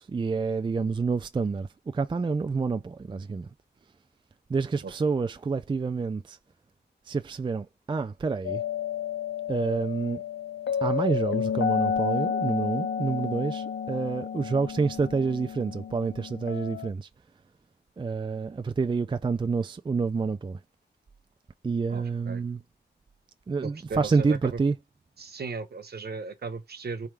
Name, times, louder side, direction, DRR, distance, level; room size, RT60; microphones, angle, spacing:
voice 1, 0.0-3.5 4.5-6.4 7.1-8.6 9.5-10.2 10.8-17.1 18.0-20.6 21.6-22.6 23.5-24.8, right 4 dB, 25° right, 0.4 m, -28 dB
sound 1, 8.4-16.9, left 7 dB, 70° left, 0.5 m, -31 dB
voice 2, 21.9-22.4 23.6-24.6 25.2-27.1, right 4 dB, 60° right, 0.9 m, -36 dB
4.3 x 3.6 x 3.3 m
wide cardioid pair, 125°, 19 cm